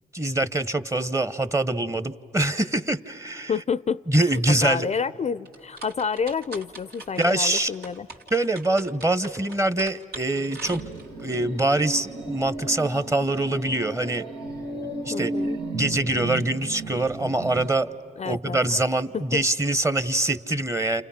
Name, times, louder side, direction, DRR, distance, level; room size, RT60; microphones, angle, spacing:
voice 1, 0.1-3.5 4.1-4.9 7.2-7.7 8.3-10.8 11.2-14.3 14.8-15.3 15.7-17.9 18.2-21.0, right 2 dB, 15° right, 1.0 m, -24 dB
voice 2, 3.5-4.0 4.3-8.1 15.1-15.6 18.2-18.8 19.1-19.4, left 6 dB, 40° left, 0.5 m, -29 dB
sound 1, 5.4-11.3, right 3 dB, 65° right, 2.1 m, -43 dB
sound 2, 10.4-17.7, right 2 dB, 85° right, 1.7 m, -34 dB
29.0 x 28.5 x 5.8 m
supercardioid pair, 45°, 17 cm